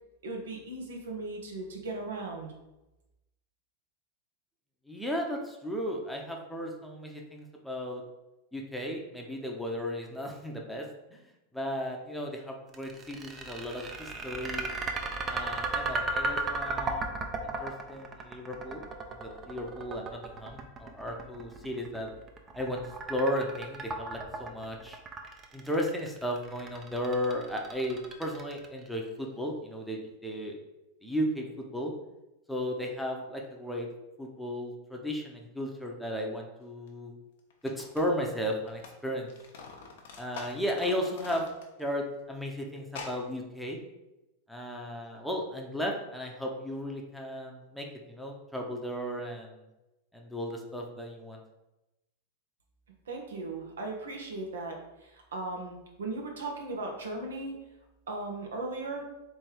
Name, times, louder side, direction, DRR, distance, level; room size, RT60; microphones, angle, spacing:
voice 1, 0.2-2.5 53.1-57.6 58.1-59.0, right 2 dB, 80° right, 1 dB, 1.0 m, -37 dB
voice 2, 4.9-8.0 8.5-10.9 11.1-11.2 11.5-14.8 15.3-18.8 19.1-22.1 22.5-22.8 23.1-25.0 25.5-30.6 31.0-31.9 32.5-33.9 34.2-37.1 37.6-39.3 40.2-41.5 41.8-43.8 44.5-49.6 50.1-51.4, equal, ahead, 0 dB, 0.8 m, -35 dB
sound 1, 12.7-28.9, right 3 dB, 30° right, 0.7 m, -35 dB
sound 2, 36.9-37.0 37.5-39.0 39.2-41.9 42.2-42.3 42.9-43.2, left 4 dB, 70° left, 0.9 m, -45 dB
3.4 x 3.4 x 4.6 m, 0.98 s
hypercardioid pair, 100°, 0 cm